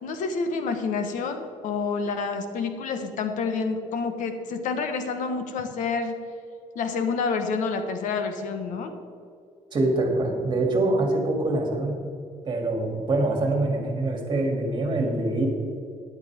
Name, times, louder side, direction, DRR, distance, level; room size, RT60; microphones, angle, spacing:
voice 1, 0.0-6.2 6.7-9.0, left 4 dB, 80° left, 7 dB, 1.3 m, -28 dB
voice 2, 9.7-12.0 12.4-15.5, right 2 dB, 35° right, 1 dB, 2.7 m, -24 dB
13.0 x 11.0 x 3.6 m, 2.4 s
cardioid pair, 135°, 13 cm